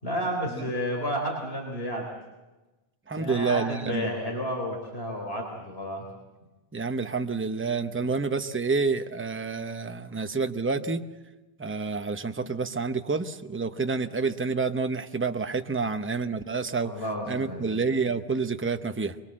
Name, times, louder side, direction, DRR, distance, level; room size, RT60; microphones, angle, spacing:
voice 1, 0.0-2.1 3.2-6.0 8.0-8.1 16.8-17.7, equal, 70° left, 0 dB, 4.3 m, -31 dB
voice 2, 3.1-4.1 6.7-11.0 11.6-16.9 17.3-19.1, right 4 dB, 15° right, 8 dB, 0.8 m, -28 dB
24.0 x 22.0 x 7.6 m, 1.1 s
omnidirectional pair, 1.1 m